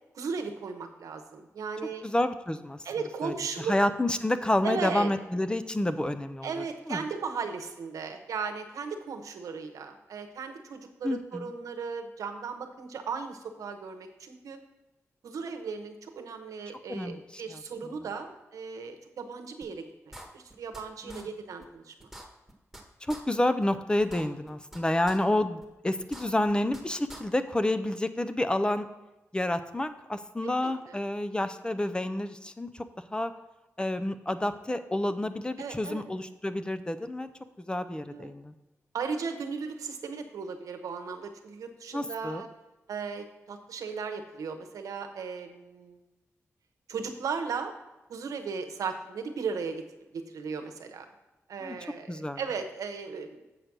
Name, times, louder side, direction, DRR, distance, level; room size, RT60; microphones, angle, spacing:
voice 1, 0.1-2.0 2.8-3.8 4.6-5.1 6.4-14.6 15.2-22.1 30.4-31.0 35.6-36.1 38.1-38.3 38.9-42.5 42.9-46.0 46.9-47.7 48.1-49.8 50.1-51.1 51.5-53.4, right 5 dB, 90° right, 6 dB, 0.9 m, -36 dB
voice 2, 2.0-2.8 3.2-3.3 3.7-6.5 6.9-7.0 11.0-11.5 16.9-17.6 21.1-21.3 23.1-28.9 29.3-32.8 33.1-33.3 33.8-37.3 37.6-38.5 41.9-42.4 51.6-51.8 52.1-52.4, left 1 dB, 15° left, 11 dB, 0.5 m, -29 dB
sound 1, 19.6-19.7 20.1-20.8 21.1-21.2 21.6-21.7 22.0-22.8 23.1-23.2 23.6-23.7 24.0-24.8 25.1-25.2 25.6-25.7 26.0-26.8 27.1-27.2, right 1 dB, ahead, 1.5 m, -45 dB
7.9 x 5.1 x 6.1 m, 1.0 s
cardioid pair, 70°, 6 cm